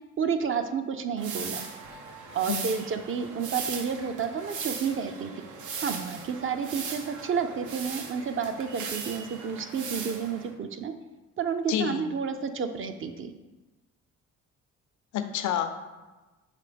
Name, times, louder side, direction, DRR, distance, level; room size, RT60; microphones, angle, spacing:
voice 1, 0.2-1.7 2.3-5.3 5.8-10.9 11.4-13.3, right 6 dB, 45° right, 8 dB, 0.6 m, -30 dB
sound 1, 1.2-10.5, right 5 dB, 80° right, 0.8 m, -38 dB
voice 2, 11.7-12.1 15.1-15.7, left 9 dB, 75° left, 8 dB, 0.6 m, -28 dB
5.0 x 3.8 x 5.1 m, 1.2 s
cardioid pair, 90°, 30 cm